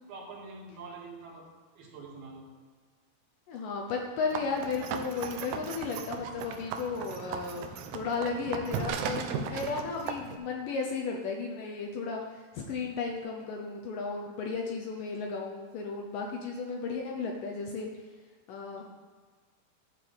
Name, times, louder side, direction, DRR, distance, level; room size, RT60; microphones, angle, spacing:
voice 1, 0.1-1.5 1.8-2.5 18.8-18.9, right 3 dB, 70° right, -3 dB, 3.7 m, -45 dB
voice 2, 3.5-17.9 18.5-18.8, left 4 dB, 70° left, 1 dB, 2.1 m, -34 dB
sound 1, 4.3-10.4, right 7 dB, 90° right, 2.7 m, -37 dB
11.5 x 4.8 x 6.8 m, 1.5 s
omnidirectional pair, 4.6 m